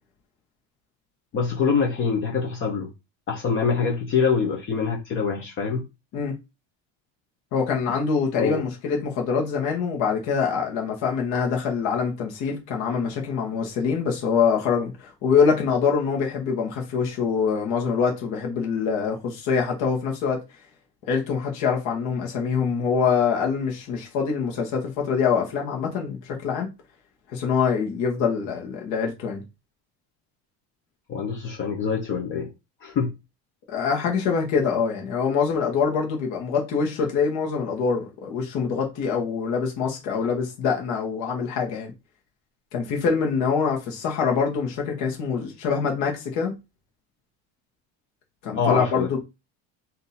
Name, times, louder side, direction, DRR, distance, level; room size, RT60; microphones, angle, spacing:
voice 1, 1.3-2.9 3.3-5.8 8.4-8.6 31.1-32.5 32.8-33.1 48.5-49.1, left 5 dB, 30° left, 0.8 m, -25 dB
voice 2, 7.5-20.4 21.1-26.7 27.3-29.4 33.7-41.9 42.7-46.5 48.4-49.2, left 6 dB, 50° left, 1.2 m, -24 dB
3.5 x 2.8 x 4.1 m
cardioid pair, 180°, 39 cm